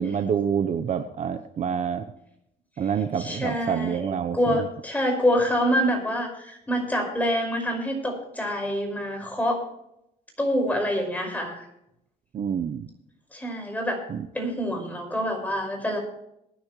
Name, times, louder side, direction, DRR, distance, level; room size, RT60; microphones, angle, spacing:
voice 1, 0.0-2.0 2.8-4.7 12.3-12.9 14.1-14.3, right 7 dB, 45° right, 9 dB, 0.8 m, -27 dB
voice 2, 3.2-9.6 10.4-11.7 13.3-14.0 14.3-16.0, equal, 10° left, 2 dB, 5.3 m, -26 dB
21.0 x 10.5 x 3.2 m, 0.78 s
cardioid pair, 110°, 17 cm